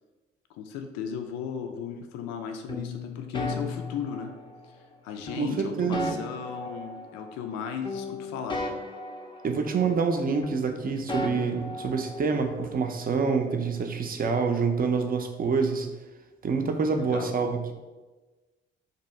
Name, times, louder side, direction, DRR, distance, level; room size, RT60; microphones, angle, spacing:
voice 1, 0.5-4.3 4.7-8.6 16.9-17.3, left 7 dB, 65° left, 5 dB, 0.5 m, -36 dB
sound 1, 2.7-4.7 5.3-7.6 7.8-10.2 10.4-12.5, left 2 dB, 15° left, 0.5 m, -36 dB
voice 2, 5.3-6.1 9.4-15.9 16.4-17.7, right 5 dB, 30° right, 5 dB, 0.5 m, -27 dB
2.7 x 2.6 x 4.3 m, 1.2 s
hypercardioid pair, 45°, 29 cm